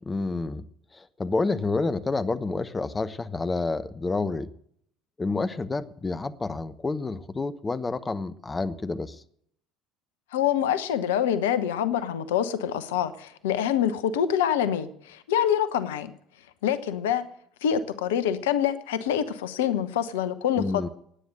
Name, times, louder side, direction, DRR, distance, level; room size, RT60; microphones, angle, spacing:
voice 1, 0.1-0.7 0.9-4.5 5.2-9.2 20.6-20.9, left 3 dB, 20° left, 13 dB, 1.0 m, -29 dB
voice 2, 10.3-16.1 16.6-17.2 17.6-20.9, left 9 dB, 70° left, 13 dB, 1.0 m, -26 dB
16.5 x 9.6 x 7.8 m, 0.67 s
figure-of-eight pair, 60°, 0 cm